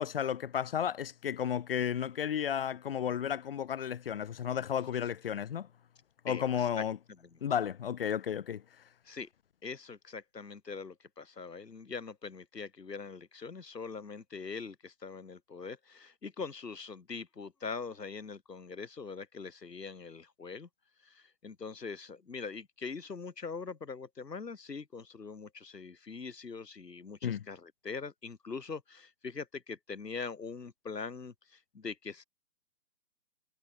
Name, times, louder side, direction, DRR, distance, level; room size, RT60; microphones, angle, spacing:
voice 1, 0.0-5.7 6.2-7.0 7.4-8.6 27.2-27.4, left 9 dB, 35° left, 2.2 m, -33 dB
voice 2, 6.3-6.8 7.2-7.4 9.0-9.3 9.6-20.7 21.0-32.2, left 4 dB, 85° left, 7.6 m, -42 dB
hypercardioid pair, 165°, 48 cm